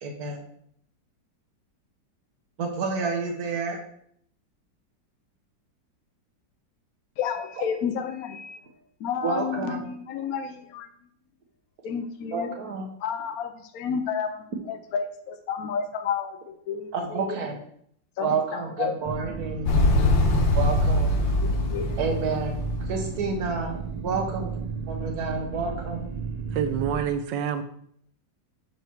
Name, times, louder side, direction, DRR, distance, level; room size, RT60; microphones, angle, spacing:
voice 1, 0.0-0.4 2.6-3.8 7.6-7.7 9.2-9.8 12.3-12.9 16.9-17.6 18.2-19.7 20.5-21.1 22.0-22.6 22.9-24.6 24.9-26.0, right 4 dB, 55° right, 2 dB, 1.6 m, -29 dB
voice 2, 7.2-8.6 9.0-10.9 11.8-12.5 13.0-16.4 16.7-17.4 18.2-18.9 21.4-22.0, left 7 dB, 65° left, 6 dB, 0.9 m, -31 dB
sound 1, 19.0-27.1, right 5 dB, 40° right, 0.6 m, -33 dB
Motorcycle, 19.7-23.6, left 2 dB, 80° left, 1.7 m, -23 dB
voice 3, 26.5-27.6, right 8 dB, 75° right, 9 dB, 1.4 m, -27 dB
6.6 x 4.7 x 4.5 m, 0.67 s
omnidirectional pair, 2.0 m